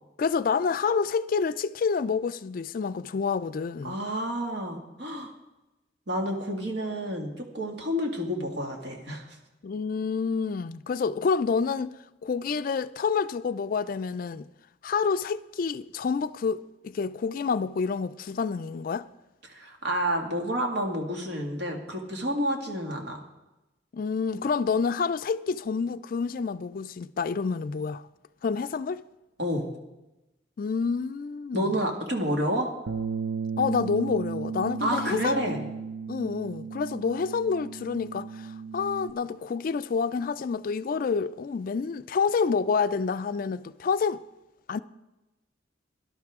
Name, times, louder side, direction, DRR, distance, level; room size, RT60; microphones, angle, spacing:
voice 1, 0.2-4.0 9.6-11.9 12.2-14.5 14.8-19.1 23.9-28.0 28.4-29.0 30.6-31.8 33.6-35.5 36.1-44.2 44.7-44.8, left 5 dB, 50° left, 0.3 m, -28 dB
voice 2, 3.8-5.3 6.1-9.4 19.5-23.2 29.4-29.7 31.5-32.7 34.8-35.6, equal, 65° right, 2.0 m, -29 dB
Bass guitar, 32.9-39.1, right 5 dB, 85° right, 0.6 m, -35 dB
17.5 x 11.5 x 3.6 m
head